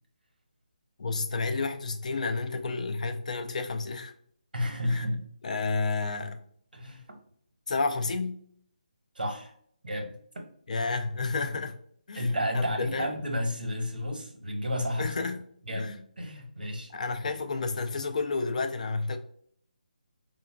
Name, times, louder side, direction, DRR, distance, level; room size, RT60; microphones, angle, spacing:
voice 1, 1.0-4.1 4.9-5.1 5.4-6.4 7.7-8.4 10.7-11.8 12.1-12.7 12.9-13.1 15.0-15.4 15.7-16.0 16.9-19.2, left 3 dB, 55° left, 0.4 m, -31 dB
voice 2, 4.5-5.2 6.7-7.2 9.1-9.5 9.8-10.1 12.1-15.2 15.7-15.9 16.2-16.9, left 1 dB, 90° right, 0.9 m, -31 dB
3.7 x 2.3 x 2.2 m
figure-of-eight pair, 160°, 5 cm